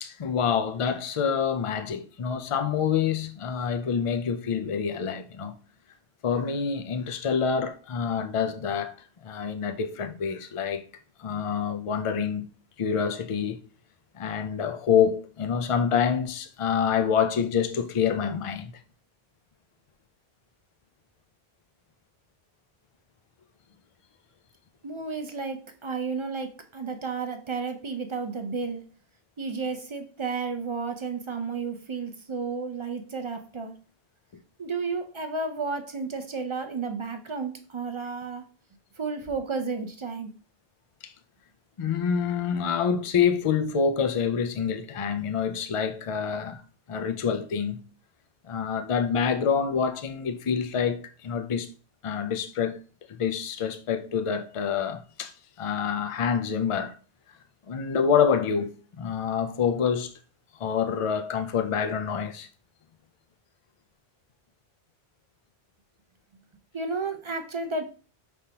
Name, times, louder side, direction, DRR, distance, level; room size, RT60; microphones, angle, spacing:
voice 1, 0.0-5.6 6.2-8.9 9.2-10.8 11.2-12.5 12.8-13.6 14.1-18.7 41.0-41.1 41.8-46.6 46.9-47.8 48.4-51.7 52.0-52.8 53.1-57.0 57.7-60.1 60.6-62.5, left 7 dB, 50° left, 0.4 m, -27 dB
voice 2, 24.8-28.9 29.4-33.7 34.6-38.4 39.0-40.3 66.7-67.8, right 4 dB, 45° right, 0.4 m, -32 dB
5.2 x 3.2 x 2.8 m
omnidirectional pair, 1.1 m